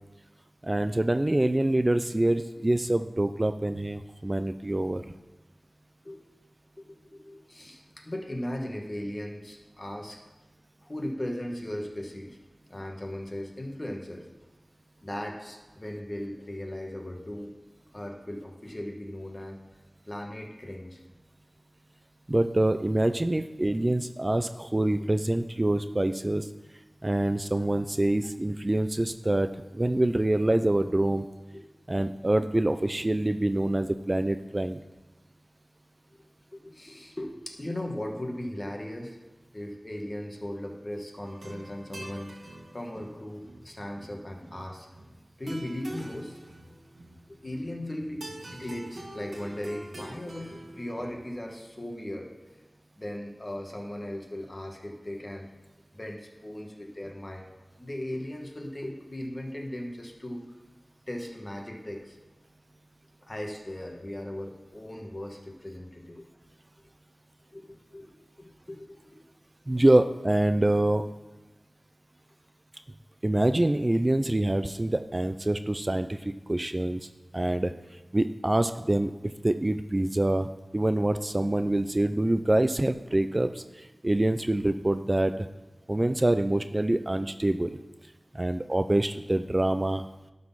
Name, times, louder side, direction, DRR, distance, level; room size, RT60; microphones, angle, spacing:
voice 1, 0.6-5.1 22.3-26.5 27.0-29.5 29.7-31.3 31.9-34.8 69.7-71.0 73.2-77.1 77.3-77.7 78.1-85.5 85.9-87.8 88.3-90.0, right 1 dB, 30° right, 9 dB, 0.4 m, -25 dB
voice 2, 6.8-10.2 10.8-12.4 12.7-14.3 15.0-17.5 17.9-19.6 20.1-21.0 31.5-31.7 36.1-36.2 36.5-39.2 39.5-42.4 42.7-44.9 45.4-46.4 47.3-48.2 48.5-52.3 53.0-55.5 55.9-60.4 61.1-62.2 63.2-66.3 67.5-69.2, left 1 dB, 35° left, 2 dB, 1.4 m, -38 dB
sound 1, 41.2-51.3, right 1 dB, 85° right, 1.6 m, -46 dB
11.5 x 4.1 x 5.6 m, 1.1 s
wide cardioid pair, 50°, 0 cm